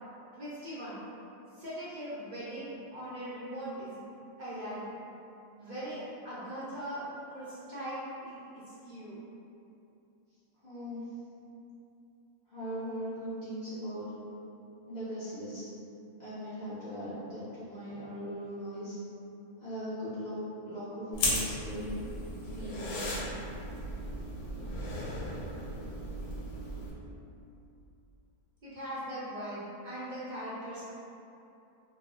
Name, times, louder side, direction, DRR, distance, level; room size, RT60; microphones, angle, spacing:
voice 1, 0.3-1.0 1.6-4.0 4.4-4.9 5.6-9.2 28.6-30.8, right 1 dB, 65° right, -10 dB, 0.4 m, -40 dB
voice 2, 10.6-11.0 12.5-14.1 14.9-15.6 16.2-19.0 19.6-20.3 20.6-22.0 22.5-22.9, equal, 50° left, -13 dB, 0.5 m, -39 dB
sound 1, 21.1-26.9, left 1 dB, 80° left, 1.1 m, -36 dB
3.0 x 2.0 x 3.6 m, 2.7 s
omnidirectional pair, 1.5 m